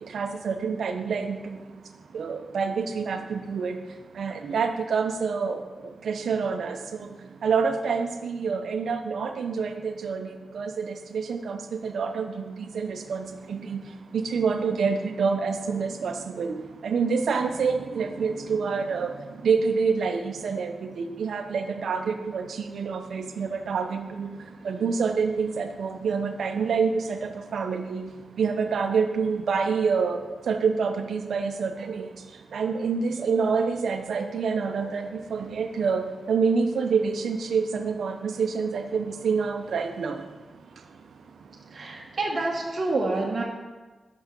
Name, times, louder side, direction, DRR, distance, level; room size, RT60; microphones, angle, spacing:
voice 1, 0.0-1.6 2.1-3.8 4.1-5.6 6.0-7.1 7.4-13.8 14.1-24.4 24.6-28.1 28.4-30.2 30.5-32.1 32.5-40.2, right 5 dB, 80° right, 6 dB, 0.7 m, -27 dB
voice 2, 41.7-43.4, right 2 dB, 55° right, -1 dB, 1.0 m, -27 dB
6.3 x 6.2 x 5.3 m, 1.2 s
cardioid pair, 50°, 0 cm